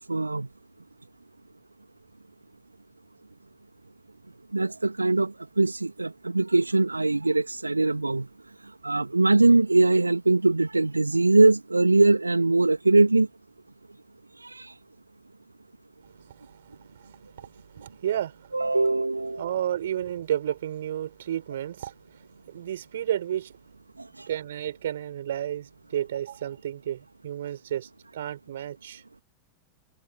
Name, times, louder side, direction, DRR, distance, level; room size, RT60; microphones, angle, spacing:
voice 1, 0.1-0.5 4.5-8.3 8.8-13.3 14.4-14.7 18.5-19.4 24.2-24.3, right 2 dB, 80° right, 1.9 m, -22 dB
voice 2, 16.0-18.6 19.4-23.5 24.2-29.0, right 11 dB, 60° right, 5.4 m, -32 dB
figure-of-eight pair, 90°, 0 cm